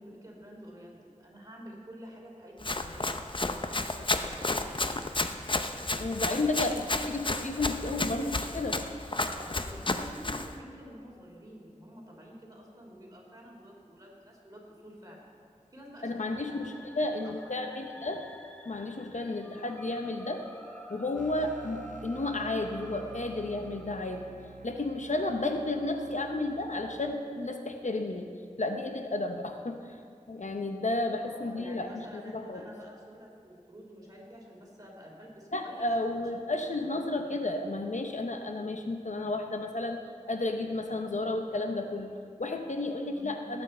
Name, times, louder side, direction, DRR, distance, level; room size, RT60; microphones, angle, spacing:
voice 1, 0.0-3.8 4.2-5.1 6.3-6.9 7.5-8.5 9.3-15.3 15.7-17.0 17.2-17.3 19.3-19.5 31.2-36.1 36.8-36.9 43.1-43.3, equal, 30° right, -3 dB, 3.3 m, -49 dB
Run, 2.6-10.5, left 2 dB, 40° left, 0.6 m, -32 dB
voice 2, 6.0-8.8 16.0-18.3 18.6-20.4 20.9-24.2 24.6-28.3 28.6-30.0 30.3-32.7 35.5-40.0 40.3-43.6, left 2 dB, 65° left, 5 dB, 0.8 m, -32 dB
sound 1, 16.1-24.3, equal, 10° left, 0.9 m, -50 dB
sound 2, 21.2-27.2, right 5 dB, 80° right, 0.5 m, -49 dB
18.0 x 8.1 x 4.3 m, 2.3 s
wide cardioid pair, 50°, 13 cm